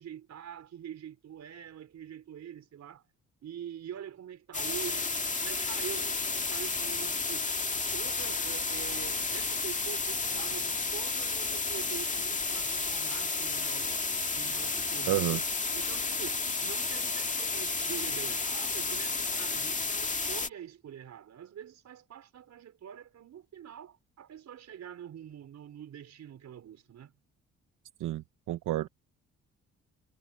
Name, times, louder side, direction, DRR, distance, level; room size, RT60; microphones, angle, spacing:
voice 1, 0.0-3.0 3.4-7.5 7.9-14.0 14.3-15.4 15.7-27.1, right 9 dB, 65° right, 4.9 m, -45 dB
sound 1, 4.5-20.5, left 4 dB, 25° left, 2.1 m, -32 dB
voice 2, 15.1-15.4 28.0-28.9, right 15 dB, 85° right, 1.0 m, -30 dB
cardioid pair, 90°, 30 cm